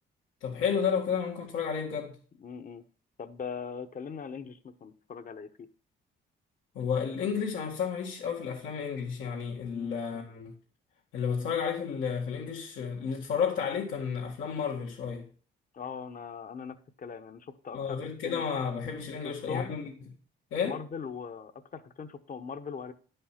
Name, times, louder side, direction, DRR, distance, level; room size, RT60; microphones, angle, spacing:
voice 1, 0.4-2.1 6.7-10.5 11.1-15.3 17.7-19.9 20.5-20.8, left 6 dB, 80° left, 2.0 m, -32 dB
voice 2, 2.4-2.8 3.2-5.7 9.7-9.9 15.7-18.4 19.2-19.7 20.6-22.9, left 6 dB, 45° left, 1.1 m, -40 dB
11.5 x 5.6 x 5.8 m
cardioid pair, 90°, 20 cm